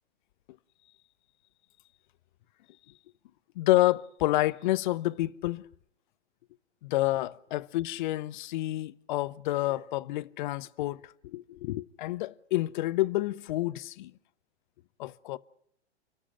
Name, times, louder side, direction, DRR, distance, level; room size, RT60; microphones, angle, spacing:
voice 1, 3.6-5.6 6.8-14.1 15.0-15.4, left 16 dB, 45° left, 0.8 m, -29 dB
30.0 x 12.5 x 8.9 m
figure-of-eight pair, 110°, 35 cm